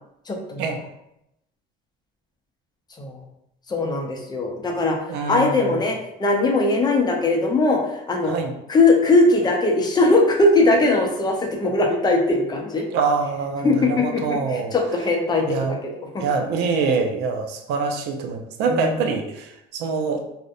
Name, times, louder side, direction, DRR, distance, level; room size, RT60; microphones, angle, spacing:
voice 1, 0.3-0.6 3.0-3.2 3.7-5.0 5.3-8.4 8.7-12.9 13.6-15.8 16.1-16.2 18.7-19.0, left 2 dB, 25° left, 1 dB, 0.5 m, -20 dB
voice 2, 5.1-5.6 8.2-8.5 12.9-14.7 15.5-15.7 16.2-20.2, right 5 dB, 90° right, 5 dB, 0.4 m, -25 dB
2.5 x 2.0 x 2.5 m, 0.82 s
cardioid pair, 110°, 17 cm